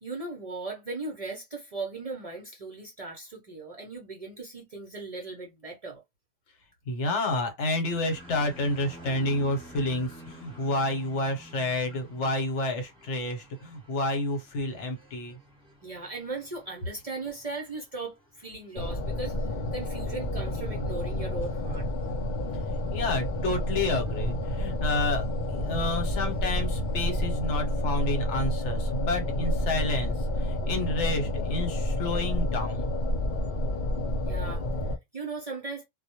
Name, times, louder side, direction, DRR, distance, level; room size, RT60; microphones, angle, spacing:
voice 1, 0.0-6.0 15.8-19.4 19.7-21.9 34.3-35.8, right 3 dB, 45° right, 0.5 m, -38 dB
voice 2, 6.9-15.4 22.9-32.9, left 2 dB, 80° left, 1.1 m, -30 dB
sound 1, 7.9-27.4, right 1 dB, 5° right, 0.8 m, -52 dB
sound 2, 18.8-35.0, left 1 dB, 60° left, 0.5 m, -29 dB
2.1 x 2.1 x 2.8 m
omnidirectional pair, 1.2 m